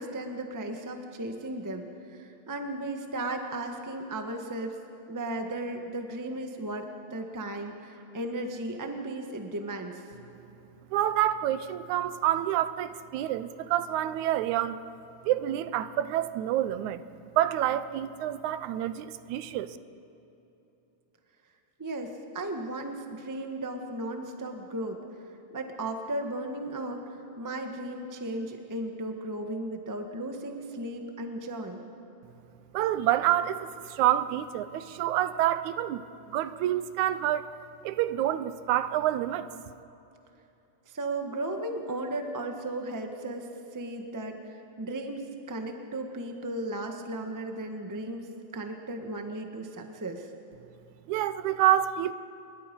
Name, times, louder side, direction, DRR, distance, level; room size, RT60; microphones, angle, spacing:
voice 1, 0.0-4.7 5.1-10.0 21.8-25.0 25.5-31.8 40.9-50.3, right 1 dB, 20° right, 4 dB, 0.4 m, -35 dB
voice 2, 10.9-14.8 15.2-17.0 17.4-19.8 32.7-37.5 37.8-39.7 51.1-52.1, right 12 dB, 80° right, 13 dB, 2.0 m, -28 dB
27.5 x 21.5 x 5.4 m, 2.9 s
omnidirectional pair, 3.5 m